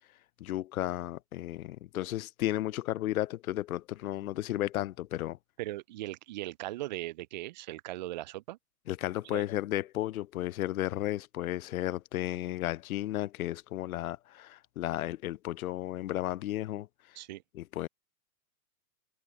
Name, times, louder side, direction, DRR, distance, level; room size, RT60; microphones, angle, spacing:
voice 1, 0.4-5.4 8.9-16.9 17.5-17.9, left 14 dB, 65° left, 0.6 m, -33 dB
voice 2, 5.6-8.6 9.2-9.5 17.2-17.4, right 17 dB, 30° right, 0.4 m, -39 dB
hypercardioid pair, 120°, 47 cm